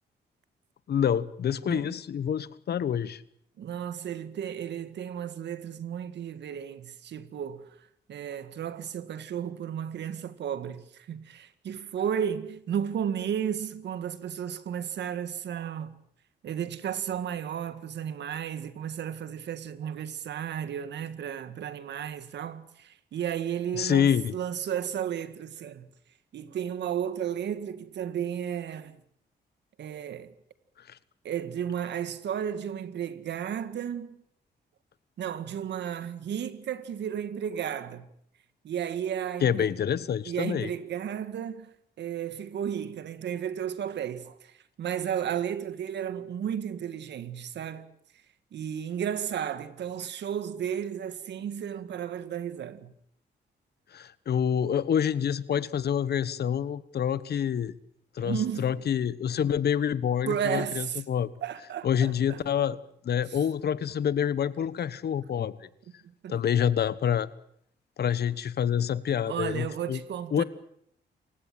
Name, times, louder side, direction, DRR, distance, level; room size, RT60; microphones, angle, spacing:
voice 1, 0.9-3.2 23.7-24.3 30.9-31.0 39.4-40.7 53.9-57.7 58.2-61.3 61.8-62.8 63.0-65.6 66.3-67.3 68.0-70.0 70.3-70.4, left 8 dB, 65° left, 1.2 m, -27 dB
voice 2, 3.6-7.7 8.1-15.9 16.4-25.9 26.3-29.0 29.8-30.3 31.2-34.1 35.2-38.1 38.6-39.7 40.2-47.9 48.5-52.9 58.2-58.8 60.3-61.0 61.4-62.4 63.3-63.4 66.2-66.4 69.3-70.4, right 9 dB, 75° right, 1.9 m, -33 dB
28.0 x 16.0 x 9.0 m
cardioid pair, 90°, 18 cm